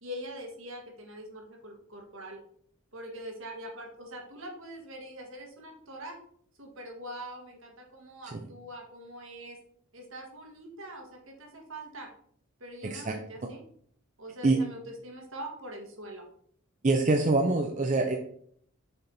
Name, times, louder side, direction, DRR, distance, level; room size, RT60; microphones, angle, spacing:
voice 1, 0.0-2.4 2.9-6.2 6.6-9.6 9.9-12.1 12.6-13.6 14.2-16.3, equal, 65° right, 2 dB, 1.5 m, -43 dB
voice 2, 12.8-13.1 14.4-14.6 16.8-18.2, right 2 dB, 35° right, 3 dB, 0.5 m, -25 dB
6.9 x 4.3 x 3.9 m, 0.62 s
head